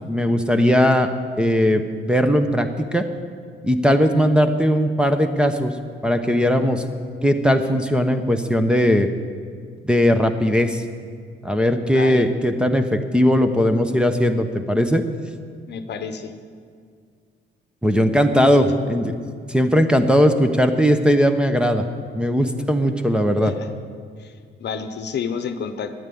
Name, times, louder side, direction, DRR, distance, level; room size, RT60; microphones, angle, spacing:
voice 1, 0.1-1.1 1.4-3.1 3.6-5.7 6.0-6.8 7.2-9.1 9.9-10.8 11.4-15.0 17.8-19.1 19.5-21.8 22.1-23.5, equal, 5° right, 7 dB, 0.9 m, -18 dB
voice 2, 11.9-12.2 15.6-16.3 18.4-18.7 23.4-23.7 24.2-24.3 24.6-25.9, left 6 dB, 60° left, 9 dB, 0.9 m, -30 dB
10.5 x 9.3 x 8.5 m, 2.1 s
cardioid pair, 90°, 20 cm